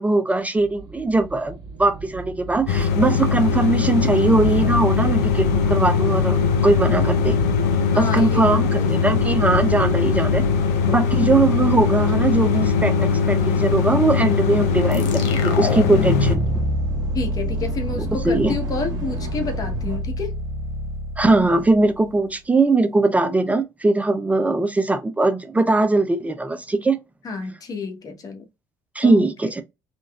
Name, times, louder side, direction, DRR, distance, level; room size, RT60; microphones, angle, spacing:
voice 1, 0.0-7.3 8.0-10.4 10.9-16.4 18.1-18.6 21.2-27.0 28.9-29.6, right 2 dB, 15° right, 0.5 m, -20 dB
sound 1, 0.5-20.0, right 4 dB, 60° right, 1.3 m, -34 dB
sound 2, 2.7-16.4, left 6 dB, 85° left, 0.5 m, -20 dB
voice 2, 7.9-9.3 17.1-20.3 27.2-28.5 29.0-29.5, left 4 dB, 45° left, 1.1 m, -30 dB
sound 3, 14.9-22.2, left 1 dB, 70° left, 0.9 m, -27 dB
3.8 x 2.3 x 2.3 m
hypercardioid pair, 65°, 8 cm